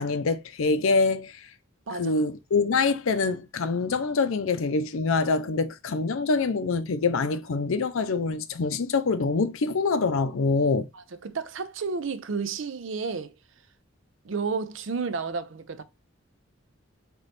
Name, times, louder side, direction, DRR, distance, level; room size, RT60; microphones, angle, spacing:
voice 1, 0.0-1.3 2.0-10.9, left 4 dB, 80° left, 0.5 m, -25 dB
voice 2, 1.9-2.2 10.9-13.4 14.2-15.8, right 5 dB, 70° right, 0.5 m, -31 dB
4.0 x 3.0 x 3.3 m
head